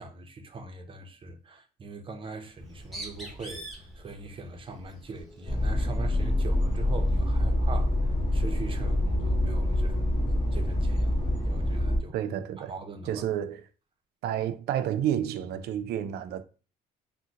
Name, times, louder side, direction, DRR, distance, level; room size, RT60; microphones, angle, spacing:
voice 1, 0.0-10.1 10.5-12.2 12.6-13.2, right 3 dB, 30° right, 0.6 m, -41 dB
Bird, 2.5-7.4, right 1 dB, ahead, 1.0 m, -45 dB
sound 1, 5.5-12.0, left 1 dB, 35° left, 1.5 m, -26 dB
voice 2, 12.1-12.7 13.1-13.6 14.2-16.4, right 10 dB, 75° right, 0.4 m, -30 dB
3.7 x 2.1 x 2.8 m
cardioid pair, 110°, 17 cm